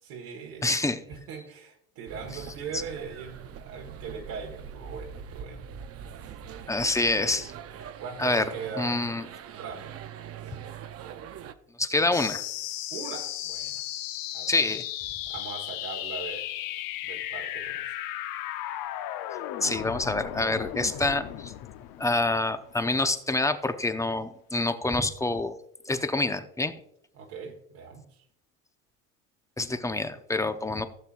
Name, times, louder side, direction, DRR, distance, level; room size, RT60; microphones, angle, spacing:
voice 1, 0.0-0.7 1.1-5.7 8.0-9.1 9.6-10.0 12.1-12.3 12.9-13.8 14.3-14.7 15.3-16.5 17.0-18.0 27.1-28.2, right 5 dB, 70° right, -1 dB, 1.8 m, -40 dB
voice 2, 0.6-1.0 6.7-7.5 8.2-8.4 8.8-9.2 11.8-12.4 14.5-14.8 19.6-21.5 22.0-25.5 25.9-26.7 29.6-30.9, left 2 dB, 10° left, 9 dB, 0.6 m, -26 dB
sound 1, 2.1-11.5, right 8 dB, 35° right, 0.7 m, -43 dB
sound 2, 12.1-23.1, left 13 dB, 55° left, 0.8 m, -35 dB
16.0 x 6.9 x 2.5 m, 0.72 s
supercardioid pair, 95°, 40 cm